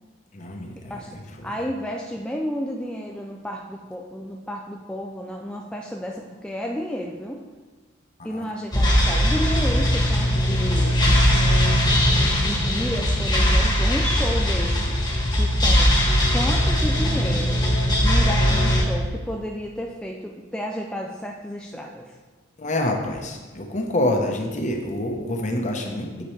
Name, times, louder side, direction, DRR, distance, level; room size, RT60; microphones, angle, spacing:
voice 1, 0.3-1.5 8.2-8.5 22.6-26.2, left 1 dB, 40° left, 3 dB, 0.9 m, -27 dB
voice 2, 0.9-1.2 1.4-7.5 8.2-11.0 11.9-15.0 15.4-15.9 16.3-17.6 18.0-22.1, equal, 5° left, 0 dB, 0.4 m, -31 dB
sound 1, 8.7-18.8, equal, 20° left, 1.3 m, -20 dB
8.8 x 6.7 x 3.2 m, 1.3 s
head